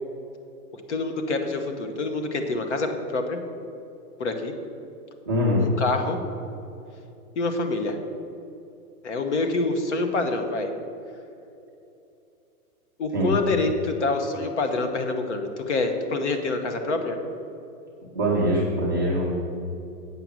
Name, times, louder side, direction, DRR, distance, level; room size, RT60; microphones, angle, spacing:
voice 1, 0.7-3.4 4.2-4.5 5.6-6.2 7.4-8.0 9.0-10.7 13.0-17.2, left 3 dB, 50° left, 6 dB, 1.1 m, -26 dB
voice 2, 5.3-5.7 13.1-13.4 18.1-19.3, equal, 15° right, -7 dB, 0.5 m, -23 dB
8.3 x 5.7 x 7.5 m, 2.8 s
hypercardioid pair, 175°, 45 cm